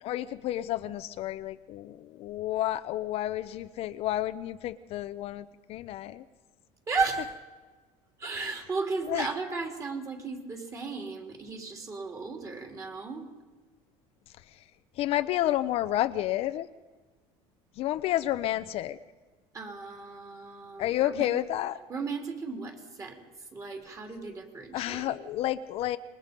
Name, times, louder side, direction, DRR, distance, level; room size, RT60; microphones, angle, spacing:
voice 1, 0.0-6.2 9.1-9.3 15.0-16.7 17.8-19.0 20.8-21.8 24.7-26.0, left 13 dB, 50° left, 11 dB, 0.7 m, -30 dB
voice 2, 6.9-7.3 8.2-13.3 19.5-21.3 21.9-23.2 23.5-25.2, right 4 dB, 25° right, 3 dB, 3.4 m, -35 dB
26.5 x 22.0 x 5.3 m, 1.3 s
cardioid pair, 140°, 13 cm